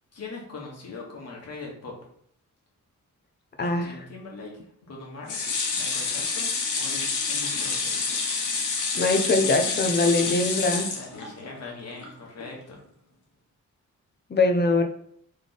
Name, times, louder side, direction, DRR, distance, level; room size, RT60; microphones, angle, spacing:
voice 1, 0.1-1.9 3.6-8.0 10.9-12.8, left 3 dB, 55° left, -2 dB, 1.5 m, -41 dB
voice 2, 3.6-3.9 9.0-10.9 14.3-14.8, left 2 dB, 35° left, 5 dB, 0.6 m, -22 dB
sound 1, 5.3-11.6 12.0-12.1 12.4-12.5, left 4 dB, 75° left, 1.1 m, -28 dB
3.6 x 3.3 x 4.0 m, 0.65 s
wide cardioid pair, 145°, 30 cm